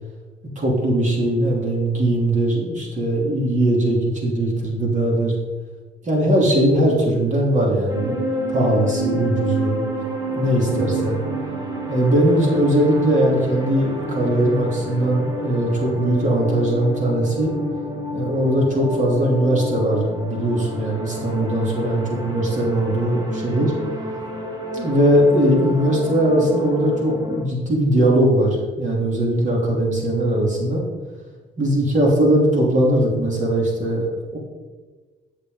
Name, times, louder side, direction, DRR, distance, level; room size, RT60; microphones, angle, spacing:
voice 1, 0.5-5.3 6.0-8.2 8.5-9.8 10.3-11.2 11.9-17.5 18.1-23.7 24.7-30.8 31.6-34.4, right 1 dB, 40° right, -3 dB, 3.2 m, -20 dB
sound 1, 7.9-27.4, equal, 20° right, 2.8 m, -29 dB
15.5 x 6.7 x 3.9 m, 1.3 s
cardioid pair, 90°, 20 cm